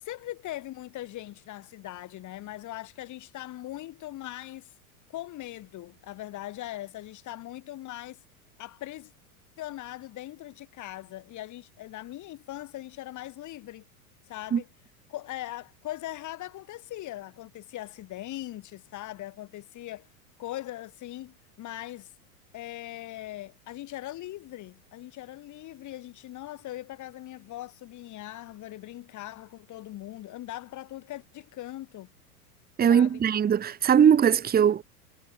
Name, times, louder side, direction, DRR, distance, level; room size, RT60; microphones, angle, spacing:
voice 1, 0.0-4.7 5.1-8.2 8.6-9.1 9.6-13.8 14.3-14.7 15.1-20.1 20.4-22.1 22.5-32.1 32.9-33.2, left 15 dB, 40° left, 4.5 m, -40 dB
voice 2, 32.8-34.8, right 8 dB, 20° right, 1.4 m, -20 dB
hypercardioid pair, 100°, 45 cm